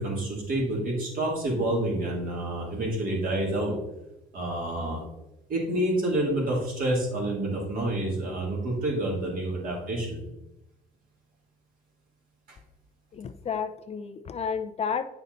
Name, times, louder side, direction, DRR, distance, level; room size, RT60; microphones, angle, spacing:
voice 1, 0.0-3.8 4.3-5.0 5.5-10.2, right 1 dB, 55° right, -2 dB, 3.2 m, -28 dB
voice 2, 13.1-15.0, left 6 dB, 40° left, 8 dB, 0.6 m, -31 dB
9.0 x 5.6 x 4.0 m, 0.93 s
cardioid pair, 110°, 17 cm